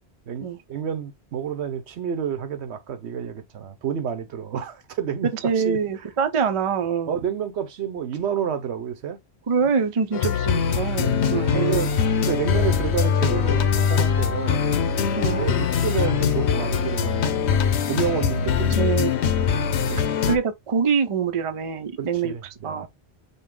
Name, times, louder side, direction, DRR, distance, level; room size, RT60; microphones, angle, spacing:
voice 1, 0.3-5.8 7.1-9.2 11.5-14.6 15.3-18.9 19.4-20.0 22.0-22.9, right 8 dB, 85° right, 1.0 m, -30 dB
voice 2, 5.4-7.2 9.5-11.9 15.1-15.4 18.7-19.1 20.3-22.3 22.6-22.9, right 6 dB, 40° right, 0.5 m, -24 dB
sound 1, 10.1-20.4, left 7 dB, 85° left, 1.0 m, -22 dB
sound 2, 11.3-12.2 13.3-14.2 15.3-16.2, left 3 dB, 25° left, 0.7 m, -42 dB
5.4 x 2.2 x 3.7 m
omnidirectional pair, 1.1 m